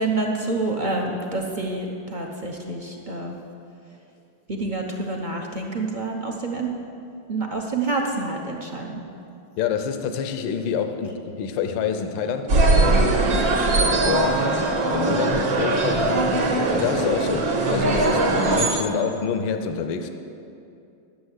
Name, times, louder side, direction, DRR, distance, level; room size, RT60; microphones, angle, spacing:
voice 1, 0.0-3.4 4.5-6.7 7.3-9.0, right 3 dB, 40° right, 0 dB, 0.7 m, -27 dB
voice 2, 9.6-13.3 14.1-14.5 14.9-16.1 16.4-20.1, left 6 dB, 80° left, 8 dB, 1.4 m, -27 dB
sound 1, 12.5-18.7, right 2 dB, 80° right, 2.1 m, -20 dB
11.0 x 7.0 x 8.0 m, 2.6 s
omnidirectional pair, 2.0 m